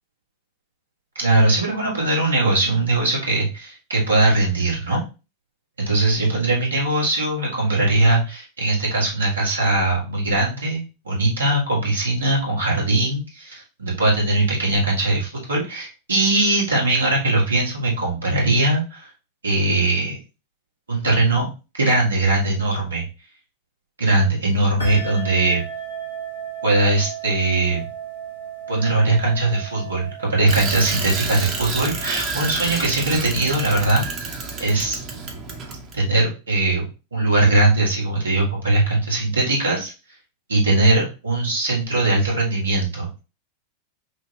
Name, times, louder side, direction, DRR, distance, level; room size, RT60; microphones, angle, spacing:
voice 1, 1.2-5.0 5.8-19.1 19.4-20.2 20.9-21.5 21.7-23.0 24.0-25.6 26.6-27.9 28.7-34.3 34.6-35.0 35.9-39.9 40.5-43.2, right 2 dB, 75° right, -3 dB, 1.9 m, -20 dB
sound 1, 24.8-32.9, right 6 dB, 90° left, 1.6 m, -35 dB
Bicycle, 30.5-36.0, right 4 dB, 35° right, 1.1 m, -29 dB
5.6 x 2.5 x 3.3 m, 0.31 s
figure-of-eight pair, 90°, 0 cm